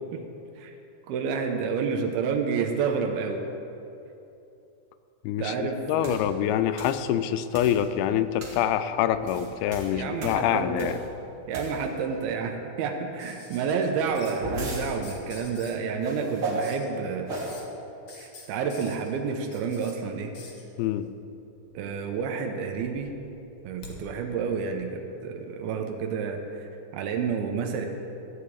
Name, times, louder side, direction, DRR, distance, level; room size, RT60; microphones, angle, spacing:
voice 1, 1.1-3.4 5.4-6.2 9.9-10.9 11.5-17.4 18.1-20.3 21.7-23.1 23.6-27.9, right 5 dB, 90° right, 4 dB, 2.7 m, -30 dB
voice 2, 5.2-11.0 20.8-21.1, left 10 dB, 90° left, 11 dB, 2.5 m, -26 dB
sound 1, 6.0-6.3 6.8-7.0 7.5-7.9 8.4-8.7 9.1-11.1 11.5-12.0 13.9-14.9 16.0-16.7 17.3-17.6, right 2 dB, 50° right, 1.7 m, -35 dB
sound 2, 13.2-14.4 14.7-15.8 16.6-16.9 17.3-17.6 18.1-19.9 20.3-20.6 21.7-22.3 22.6-24.0 25.3-25.4, left 4 dB, 60° left, 1.4 m, -47 dB
14.0 x 4.8 x 8.4 m, 2.8 s
omnidirectional pair, 4.3 m